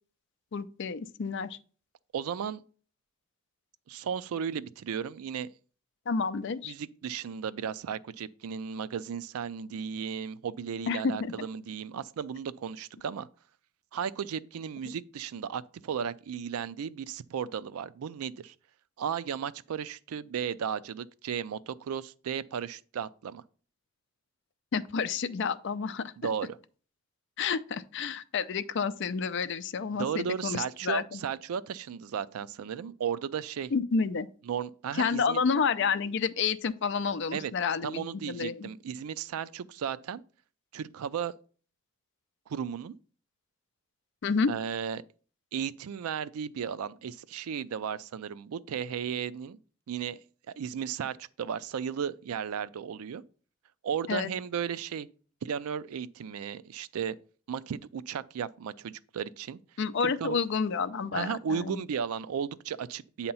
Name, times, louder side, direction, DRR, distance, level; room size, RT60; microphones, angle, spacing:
voice 1, 0.5-1.6 6.1-6.7 10.9-11.3 24.7-26.0 27.4-31.2 33.7-34.3 35.0-38.7 44.2-44.5 54.1-54.3 59.8-61.8, left 5 dB, 55° left, 0.4 m, -30 dB
voice 2, 2.1-2.6 3.9-5.5 6.6-13.3 13.9-18.5 19.0-23.4 26.2-26.6 30.0-33.7 34.5-35.4 37.3-37.5 37.8-40.2 40.7-41.3 42.5-42.9 44.5-45.0 45.5-49.6 49.9-50.2 50.6-53.2 53.8-55.1 55.4-57.1 57.5-59.6 60.0-60.4 61.1-63.3, right 7 dB, 85° right, 0.4 m, -35 dB
8.6 x 2.9 x 5.4 m
head